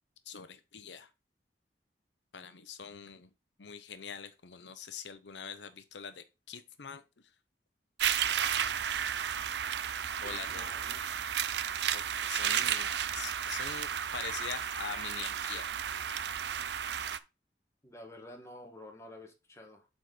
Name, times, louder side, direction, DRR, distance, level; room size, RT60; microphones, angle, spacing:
voice 1, 0.3-1.1 2.3-3.3 3.6-7.0 10.2-10.7 11.9-15.7, left 6 dB, 90° left, 0.8 m, -43 dB
sound 1, 8.0-17.2, right 9 dB, 75° right, 0.5 m, -33 dB
voice 2, 10.5-11.0 17.8-19.9, left 1 dB, 15° left, 1.6 m, -50 dB
7.7 x 4.3 x 4.9 m
head